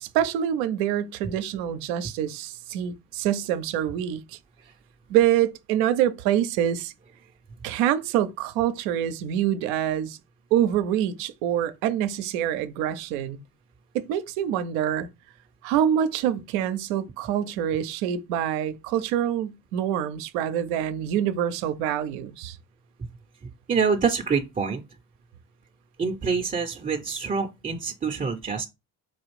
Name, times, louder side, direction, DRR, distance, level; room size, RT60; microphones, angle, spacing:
voice 1, 0.0-4.4 5.1-6.9 7.6-10.2 10.5-13.4 13.9-15.1 15.6-22.6, right 10 dB, 80° right, 0.6 m, -26 dB
voice 2, 23.7-24.8 26.0-28.7, right 5 dB, 20° right, 0.5 m, -26 dB
4.2 x 2.4 x 3.1 m
hypercardioid pair, 50°, 46 cm